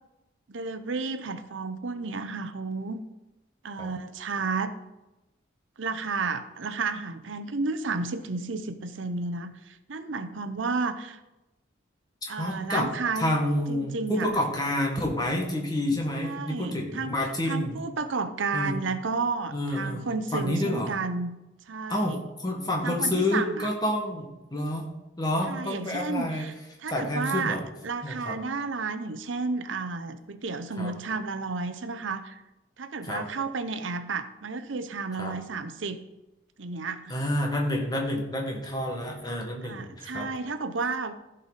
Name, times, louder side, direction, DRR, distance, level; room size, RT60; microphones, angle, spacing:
voice 1, 0.5-3.0 3.6-4.7 5.8-11.2 12.3-13.3 13.7-14.3 16.2-21.4 21.7-22.2 22.8-23.7 25.4-26.5 26.8-27.6 27.8-32.4 32.8-36.0 36.6-37.2 39.6-41.1, right 4 dB, 85° right, 10 dB, 0.7 m, -32 dB
voice 2, 12.2-12.9 13.2-17.7 18.5-18.8 19.5-20.1 20.3-20.9 21.9-24.9 25.2-26.5 26.9-27.6 28.0-28.4 30.8-30.9 33.0-33.2 35.2-35.3 37.1-40.3, left 1 dB, 20° left, 0 dB, 1.6 m, -29 dB
15.0 x 5.4 x 4.1 m, 0.99 s
head